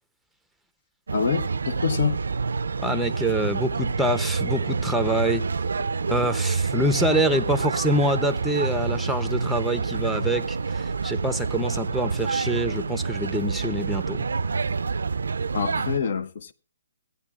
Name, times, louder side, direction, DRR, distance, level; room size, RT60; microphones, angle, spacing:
voice 1, 1.1-2.2 6.2-6.3 15.5-16.5, left 6 dB, 60° left, 0.7 m, -26 dB
sound 1, 1.1-16.0, right 4 dB, 80° right, 0.4 m, -27 dB
voice 2, 2.8-5.5 6.1-14.2, right 1 dB, ahead, 0.7 m, -26 dB
16.5 x 9.2 x 2.4 m
hypercardioid pair, 145°, 0 cm